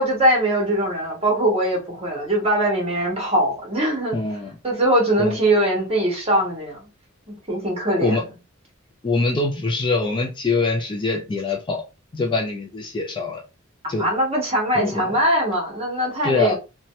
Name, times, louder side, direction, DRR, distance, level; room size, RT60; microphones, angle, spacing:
voice 1, 0.0-4.1 4.6-6.9 7.3-8.2 14.0-16.6, right 1 dB, 30° right, 1.2 m, -21 dB
voice 2, 4.1-4.5 5.2-5.4 8.0-8.2 9.0-11.8 12.1-13.4 13.9-14.1 14.7-15.1 16.2-16.5, left 3 dB, 25° left, 0.4 m, -23 dB
2.8 x 2.2 x 3.0 m
head